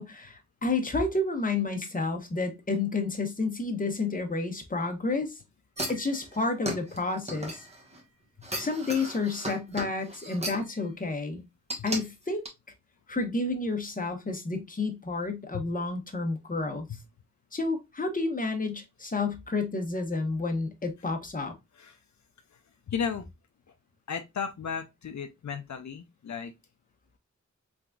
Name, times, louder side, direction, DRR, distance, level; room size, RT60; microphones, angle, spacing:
voice 1, 0.0-5.4 5.9-7.6 8.6-11.4 11.8-12.5 13.1-16.9 17.5-21.5, left 3 dB, 30° left, 0.9 m, -30 dB
sound 1, 5.8-8.0 8.4-10.7 11.7-12.0 12.5-12.6, right 1 dB, 20° right, 1.1 m, -36 dB
voice 2, 22.9-23.3 24.1-26.5, left 6 dB, 70° left, 0.5 m, -34 dB
3.9 x 3.4 x 2.3 m
wide cardioid pair, 90°, 30 cm